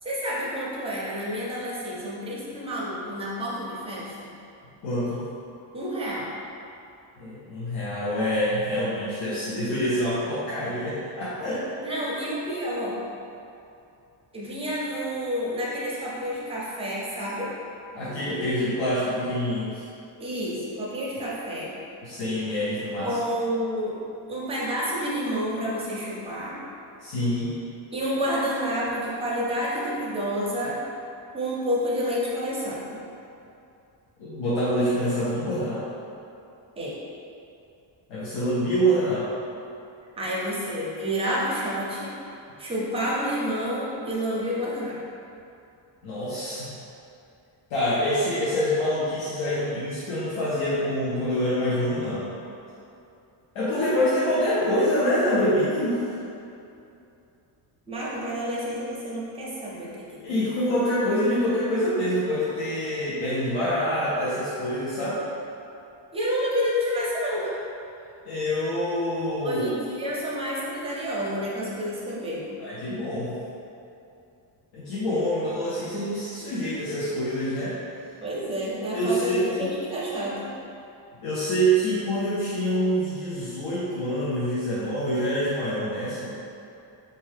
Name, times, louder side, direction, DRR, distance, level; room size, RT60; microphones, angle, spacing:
voice 1, 0.0-4.3 5.7-6.3 11.8-13.0 14.3-17.5 20.2-21.7 23.0-24.0 24.3-26.6 27.9-30.8 31.3-33.0 36.8-36.9 40.2-42.1 42.6-45.0 57.9-60.4 66.1-67.6 69.4-72.6 78.2-80.5, equal, 15° right, -7 dB, 0.4 m, -29 dB
voice 2, 4.8-5.3 7.2-11.6 17.9-19.8 22.0-23.2 27.0-27.5 34.2-35.9 38.1-39.3 46.0-46.8 47.7-52.3 53.5-56.0 60.2-65.2 68.2-69.6 72.6-73.4 74.7-77.7 78.9-79.7 81.2-86.3, equal, 80° left, -10 dB, 0.8 m, -26 dB
4.1 x 2.3 x 3.2 m, 2.7 s
cardioid pair, 175°, 47 cm